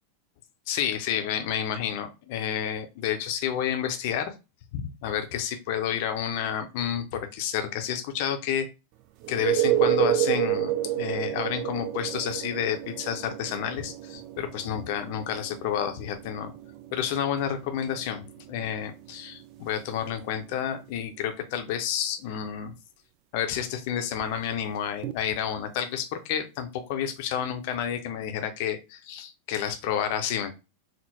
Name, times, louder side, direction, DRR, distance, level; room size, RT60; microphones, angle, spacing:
voice 1, 0.7-4.3 4.7-8.7 9.3-16.5 16.9-18.2 18.5-22.7 23.3-30.5, left 9 dB, 50° left, 6 dB, 0.6 m, -30 dB
sound 1, 9.2-20.8 25.0-25.1, right 13 dB, 40° right, 0.3 m, -30 dB
3.6 x 2.0 x 2.8 m, 0.27 s
figure-of-eight pair, 90°, 0 cm